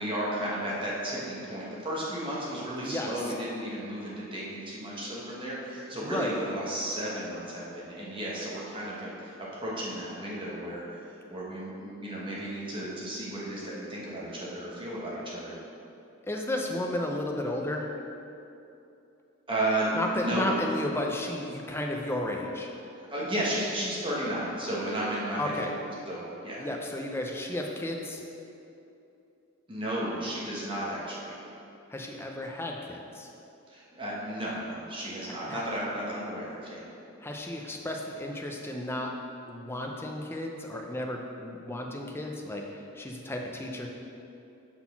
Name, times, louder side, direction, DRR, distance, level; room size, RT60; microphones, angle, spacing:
voice 1, 0.0-15.6 19.5-20.6 23.0-25.8 26.1-26.6 29.7-31.4 33.7-36.9, right 1 dB, 25° right, -6 dB, 1.2 m, -33 dB
voice 2, 2.7-3.3 5.9-6.3 10.4-10.5 16.3-17.9 19.9-22.7 25.4-25.7 26.6-28.2 31.9-33.3 35.5-35.6 37.2-39.1 39.5-43.9, left 1 dB, 10° left, 1 dB, 0.5 m, -33 dB
5.8 x 4.1 x 5.8 m, 2.8 s
head